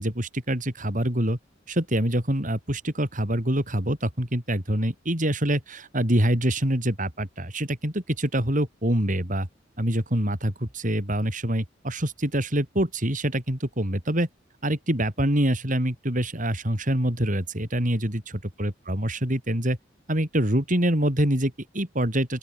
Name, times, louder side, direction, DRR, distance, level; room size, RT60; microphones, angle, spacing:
voice 1, 0.0-1.4 1.7-9.5 9.8-14.3 14.6-19.8 20.1-22.4, right 1 dB, 45° right, 5.4 m, -25 dB
open air
head